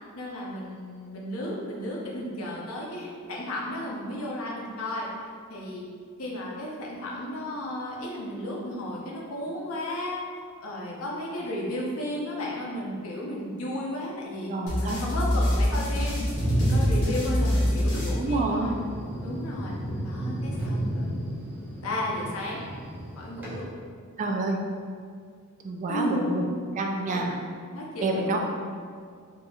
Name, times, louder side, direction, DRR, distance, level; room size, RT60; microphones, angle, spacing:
voice 1, 0.1-5.1 5.5-5.8 6.2-10.2 10.6-16.2 16.6-18.8 19.2-19.7 20.0-21.1 21.8-22.6 23.2-23.7 25.9-26.5 27.1-27.3 27.7-28.4, left 1 dB, 75° left, -3 dB, 0.7 m, -33 dB
voice 2, 14.5-15.0 18.2-18.8 24.2-24.6 25.6-26.4 26.8-27.4 28.0-28.4, right 2 dB, 35° right, 1 dB, 0.3 m, -28 dB
sound 1, 14.7-18.9, left 1 dB, 55° left, 1.1 m, -26 dB
Thunder, 16.3-23.5, right 1 dB, 10° right, 0.7 m, -31 dB
4.0 x 2.7 x 2.3 m, 2.1 s
head